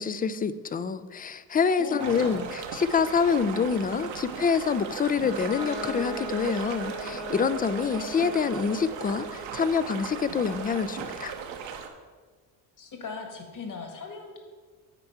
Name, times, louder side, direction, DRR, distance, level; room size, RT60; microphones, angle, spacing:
voice 1, 0.0-11.3, left 6 dB, 20° left, 14 dB, 0.3 m, -26 dB
voice 2, 1.8-2.5 12.8-14.4, left 4 dB, 45° left, 4 dB, 1.8 m, -38 dB
sound 1, 2.0-11.9, right 7 dB, 75° right, 1.1 m, -37 dB
Bowed string instrument, 5.1-10.7, left 1 dB, 90° left, 2.6 m, -40 dB
9.0 x 4.3 x 5.8 m, 1.4 s
supercardioid pair, 75°, 45 cm